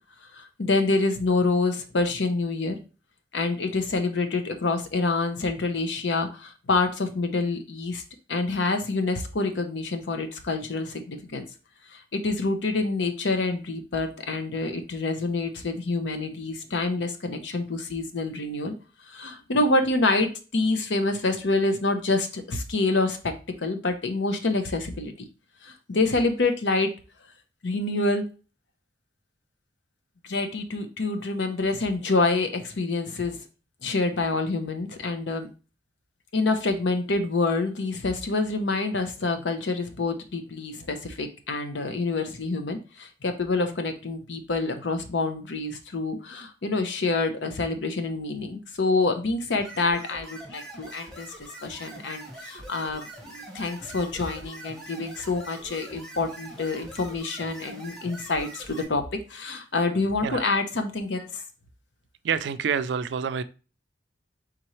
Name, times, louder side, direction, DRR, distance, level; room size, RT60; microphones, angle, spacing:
voice 1, 0.3-2.8 3.3-8.0 8.3-11.4 11.9-18.7 19.1-23.3 23.6-25.1 25.6-26.9 27.6-28.3 30.2-33.4 33.8-35.5 36.3-51.3 51.6-61.4, left 3 dB, 75° left, 0.7 m, -27 dB
sound 1, 49.6-58.8, right 1 dB, 5° left, 1.0 m, -43 dB
voice 2, 62.2-63.4, right 7 dB, 70° right, 0.3 m, -27 dB
4.3 x 3.7 x 3.0 m
head